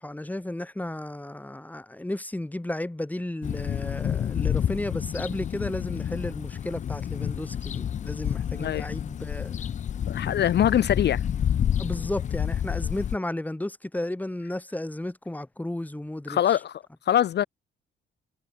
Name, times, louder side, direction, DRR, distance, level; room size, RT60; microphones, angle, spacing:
voice 1, 0.0-9.6 11.8-16.6, left 1 dB, 10° left, 2.7 m, -33 dB
sound 1, 3.4-13.2, left 9 dB, 40° left, 0.4 m, -29 dB
voice 2, 8.6-8.9 10.1-11.2 16.3-17.4, left 11 dB, 60° left, 0.8 m, -23 dB
cardioid pair, 90°, 20 cm